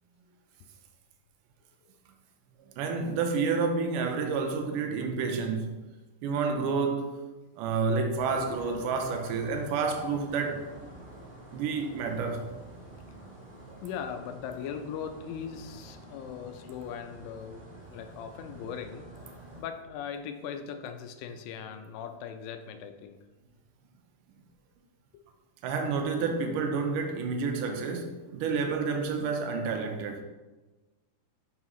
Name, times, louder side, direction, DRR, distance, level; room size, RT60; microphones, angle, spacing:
voice 1, 2.8-5.9 6.2-7.1 7.6-10.6 11.5-12.5 25.6-30.2, right 4 dB, 75° right, 2.1 m, -29 dB
sound 1, 8.1-19.6, right 1 dB, 20° right, 1.6 m, -48 dB
voice 2, 13.8-17.6 17.9-23.2, left 7 dB, 80° left, 2.3 m, -39 dB
7.4 x 5.6 x 3.0 m
omnidirectional pair, 4.1 m